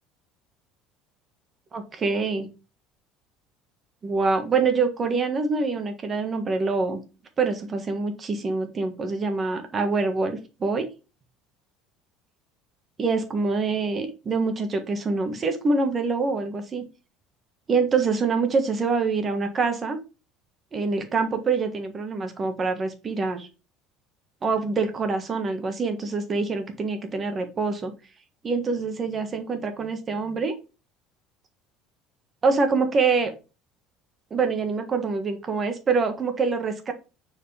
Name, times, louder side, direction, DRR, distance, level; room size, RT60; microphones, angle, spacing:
voice 1, 1.7-2.5 4.0-7.0 7.4-10.9 13.0-16.8 17.7-20.0 20.7-23.5 24.4-27.9 28.4-30.5 32.4-33.3 34.3-36.9, right 4 dB, 25° right, 7 dB, 1.5 m, -25 dB
6.4 x 4.8 x 3.4 m, 0.30 s
cardioid pair, 145°, 0 cm